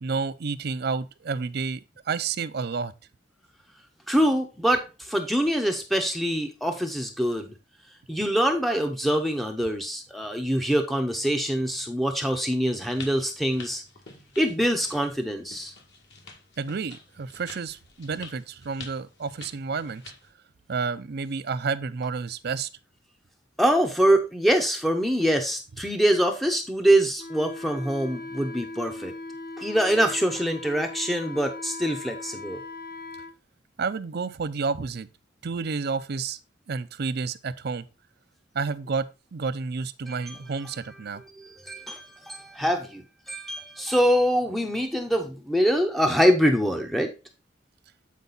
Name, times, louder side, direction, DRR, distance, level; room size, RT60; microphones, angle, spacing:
voice 1, 0.0-2.9 16.6-20.0 20.7-22.7 33.8-35.1 35.4-36.4 36.7-37.9 38.5-41.2, right 5 dB, 60° right, 0.5 m, -30 dB
voice 2, 4.1-7.5 8.1-13.8 14.4-15.7 23.6-29.1 29.6-32.6 40.1-40.4 41.4-47.1, equal, ahead, 0.7 m, -24 dB
sound 1, 12.8-20.3, left 4 dB, 65° left, 2.0 m, -47 dB
Wind instrument woodwind instrument, 27.2-33.3, left 2 dB, 50° left, 0.8 m, -39 dB
8.4 x 4.6 x 3.9 m
head